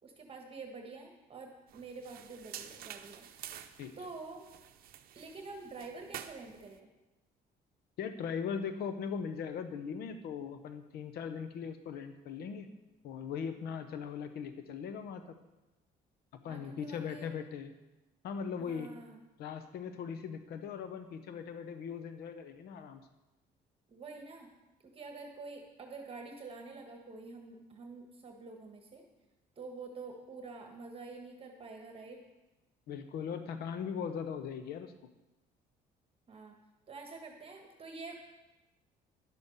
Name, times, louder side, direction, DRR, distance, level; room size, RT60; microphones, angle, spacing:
voice 1, 0.0-3.3 4.0-4.4 5.1-6.9 16.4-17.3 18.6-19.2 23.9-24.5 24.8-29.0 29.6-32.2 36.3-36.5 36.9-38.2, right 3 dB, 35° right, 3 dB, 1.4 m, -47 dB
sound 1, 1.7-6.8, right 10 dB, 60° right, 0.7 m, -49 dB
voice 2, 8.0-12.7 13.0-15.4 16.3-17.7 18.2-18.9 19.4-23.0 32.9-34.9, left 6 dB, 70° left, 8 dB, 0.8 m, -39 dB
11.0 x 7.2 x 5.4 m, 1.0 s
cardioid pair, 110°, 17 cm